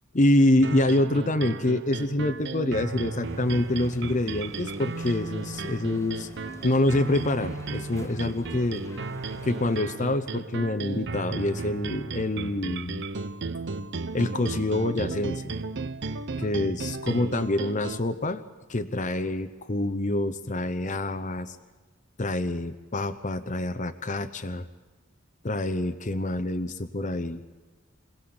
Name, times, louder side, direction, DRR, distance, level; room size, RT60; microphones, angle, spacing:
voice 1, 0.1-6.3 6.6-8.8 9.4-13.0 14.1-15.6 16.4-18.4 18.7-21.6 22.2-24.7 25.4-27.4, left 1 dB, 40° left, 8 dB, 0.9 m, -26 dB
sound 1, 0.6-18.0, right 3 dB, 60° right, 0.8 m, -35 dB
sound 2, 3.2-9.8, left 1 dB, 15° left, 1.4 m, -46 dB
26.0 x 17.5 x 7.9 m, 1.3 s
head